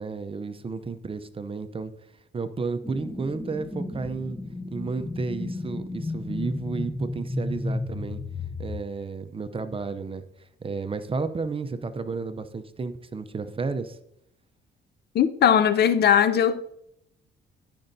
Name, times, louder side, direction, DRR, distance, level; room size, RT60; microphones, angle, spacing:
voice 1, 0.0-1.9 2.3-4.4 4.7-8.2 8.6-10.2 10.6-14.0, right 4 dB, 25° right, 0.6 m, -32 dB
sound 1, 2.8-8.8, left 2 dB, 10° left, 0.7 m, -33 dB
voice 2, 15.1-16.6, left 9 dB, 55° left, 0.5 m, -19 dB
12.5 x 5.4 x 2.7 m
cardioid pair, 90°, 20 cm